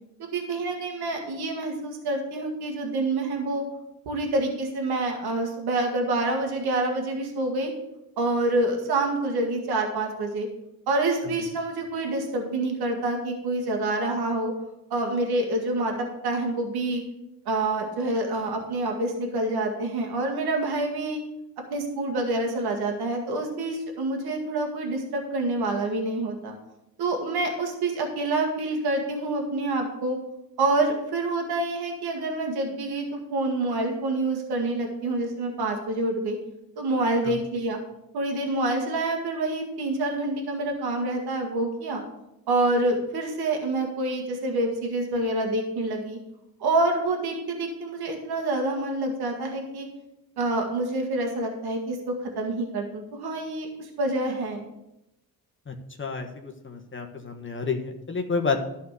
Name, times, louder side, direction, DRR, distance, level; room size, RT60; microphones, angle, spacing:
voice 1, 0.2-3.6 4.0-7.7 8.2-10.5 10.9-14.5 14.9-15.9 16.2-17.0 17.4-21.2 21.7-26.5 27.0-30.2 30.6-36.4 36.8-37.8 38.1-42.0 42.5-46.2 46.6-49.9 50.4-54.7, right 2 dB, 85° right, 2 dB, 1.7 m, -27 dB
voice 2, 55.7-58.6, left 4 dB, 30° left, 3 dB, 1.3 m, -30 dB
11.5 x 4.2 x 8.1 m, 0.86 s
cardioid pair, 80°, 37 cm